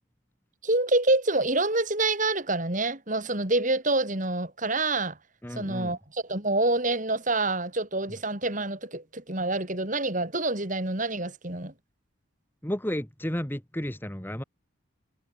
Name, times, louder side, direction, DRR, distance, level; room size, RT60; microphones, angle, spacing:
voice 1, 0.6-5.2 5.5-11.7, right 2 dB, 35° right, 3.3 m, -27 dB
voice 2, 5.4-6.0 12.6-14.4, equal, 10° left, 1.3 m, -32 dB
head